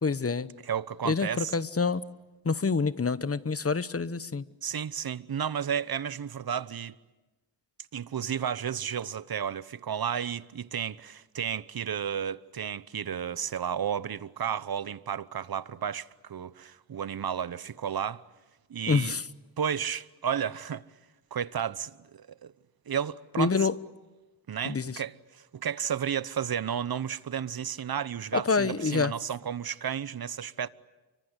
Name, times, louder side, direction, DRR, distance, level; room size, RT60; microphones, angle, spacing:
voice 1, 0.0-0.5 1.0-2.0 2.4-4.4 18.9-19.2 23.4-23.7 24.6-25.0 28.3-29.1, left 4 dB, 30° left, 1.0 m, -27 dB
voice 2, 0.7-1.5 4.6-7.0 7.9-18.2 18.7-19.2 19.6-20.8 21.3-22.5 22.9-23.5 24.5-30.7, right 8 dB, 50° right, 1.0 m, -32 dB
30.0 x 24.5 x 8.2 m
cardioid pair, 65°, 46 cm